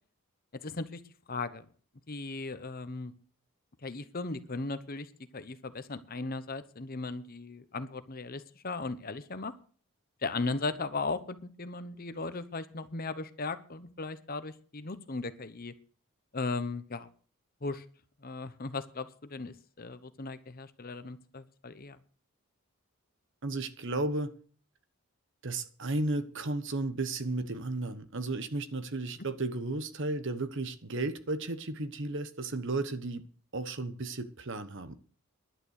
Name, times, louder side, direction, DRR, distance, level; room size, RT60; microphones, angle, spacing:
voice 1, 0.6-1.0 1.3-1.6 2.1-3.1 3.8-9.5 10.2-15.7 16.3-17.1 17.6-17.8 18.2-22.0, left 3 dB, 40° left, 0.9 m, -37 dB
voice 2, 23.4-24.3 25.4-33.2 33.5-35.0, right 2 dB, 55° right, 1.1 m, -34 dB
11.0 x 9.8 x 6.5 m
head